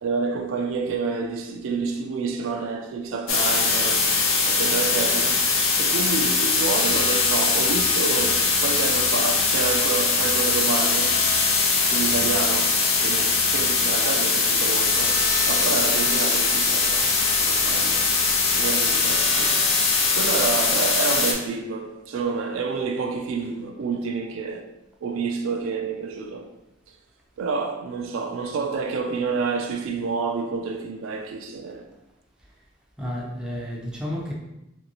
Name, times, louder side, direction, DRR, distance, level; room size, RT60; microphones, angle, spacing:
voice 1, 0.0-5.5 5.8-11.2 11.9-12.7 13.0-18.1 18.5-19.6 20.1-24.7 25.0-26.5 27.4-31.9, right 4 dB, 80° right, 0.4 m, -29 dB
sound 1, 3.3-21.3, left 4 dB, 80° left, 0.6 m, -21 dB
voice 2, 12.0-12.3 33.0-34.3, equal, 5° right, 0.5 m, -32 dB
3.0 x 2.6 x 2.9 m
head